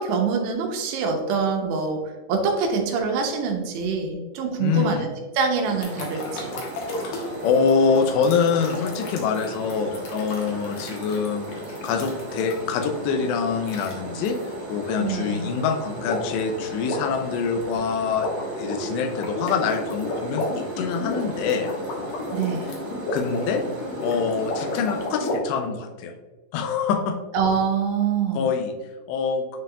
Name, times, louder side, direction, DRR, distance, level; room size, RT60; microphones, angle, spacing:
voice 1, 0.0-2.0 2.3-5.1 5.3-6.5 15.0-15.5 22.3-22.6 27.3-28.4, right 5 dB, 80° right, 2 dB, 3.1 m, -25 dB
voice 2, 4.6-5.1 7.1-11.4 11.8-14.4 14.7-18.3 18.6-21.7 23.1-23.6 24.0-26.1 26.5-27.2 28.3-28.7 29.1-29.4, left 6 dB, 85° left, 4 dB, 2.9 m, -25 dB
sound 1, 5.6-25.1, right 2 dB, 45° right, 1.6 m, -36 dB
sound 2, 5.8-12.8 13.6-13.9 14.3-14.4 16.1-16.4 16.7-25.4, left 2 dB, 65° left, 2.5 m, -33 dB
9.7 x 4.6 x 2.4 m, 1.3 s
omnidirectional pair, 4.9 m